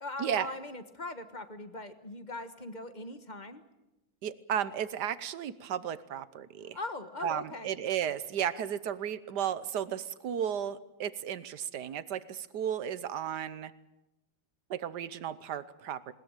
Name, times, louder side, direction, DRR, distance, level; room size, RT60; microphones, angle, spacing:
voice 1, 0.0-3.6 6.7-7.7, left 2 dB, 25° left, 10 dB, 1.2 m, -40 dB
voice 2, 4.2-6.8 7.2-13.7 14.7-16.1, right 9 dB, 60° right, 15 dB, 1.4 m, -34 dB
20.5 x 19.5 x 8.9 m, 0.96 s
omnidirectional pair, 2.1 m